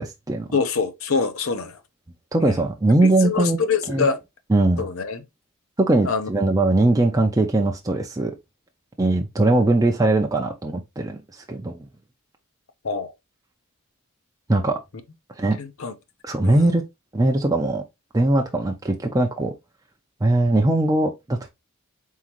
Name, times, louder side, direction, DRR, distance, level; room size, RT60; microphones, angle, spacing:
voice 1, 0.0-0.5 2.3-3.6 3.9-4.1 4.5-4.8 5.8-8.4 9.0-11.9 14.5-14.8 15.4-15.6 16.2-16.8 17.1-17.8 18.1-19.5 20.2-21.5, right 2 dB, 15° right, 0.5 m, -20 dB
voice 2, 0.5-1.8 2.4-2.6 3.0-4.2 4.8-5.2 6.0-6.3 12.8-13.1 15.6-15.9 16.4-16.7, left 5 dB, 65° left, 0.7 m, -25 dB
4.3 x 3.7 x 2.9 m
head